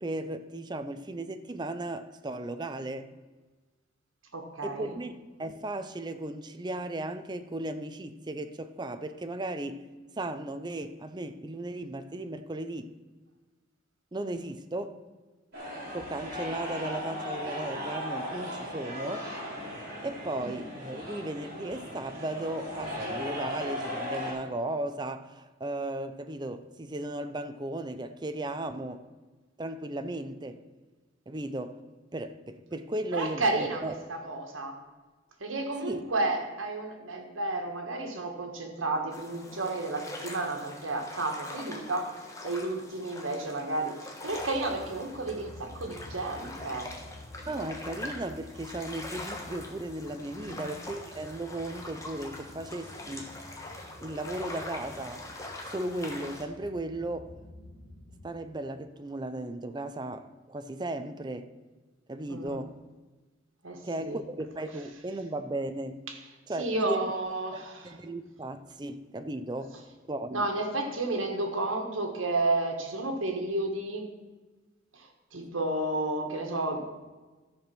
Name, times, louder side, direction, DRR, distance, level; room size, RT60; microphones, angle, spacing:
voice 1, 0.0-3.1 4.6-5.1 5.4-9.8 10.2-13.0 14.1-15.0 15.9-19.3 20.0-29.0 29.6-30.6 31.3-31.8 32.1-33.9 35.8-36.0 47.5-53.4 54.0-55.3 55.6-57.3 58.2-61.5 62.1-62.8 63.8-66.0 66.5-67.1 67.5-69.7 70.1-70.5, right 1 dB, 20° right, 0.5 m, -36 dB
voice 2, 4.3-5.0 33.1-34.8 35.4-42.1 42.4-46.9 50.4-50.6 62.3-62.6 63.6-64.2 66.1-66.2 66.6-67.9 70.3-74.1 74.9-76.8, right 2 dB, 85° right, 1.7 m, -32 dB
sound 1, 15.5-24.3, left 1 dB, 50° right, 3.3 m, -37 dB
sound 2, 39.1-56.4, left 2 dB, 15° left, 1.2 m, -43 dB
sound 3, 44.3-58.3, left 1 dB, 60° left, 1.8 m, -50 dB
13.0 x 5.0 x 6.0 m
head